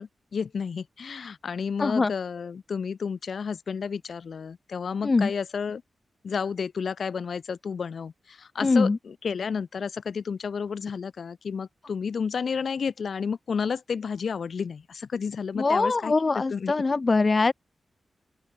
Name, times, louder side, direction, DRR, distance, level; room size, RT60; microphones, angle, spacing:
voice 1, 0.0-5.8 6.2-16.7, left 6 dB, 65° left, 1.7 m, -31 dB
voice 2, 1.8-2.1 5.0-5.3 8.6-9.0 15.6-17.5, left 3 dB, 35° left, 0.3 m, -22 dB
open air
wide cardioid pair, 135°, 0 cm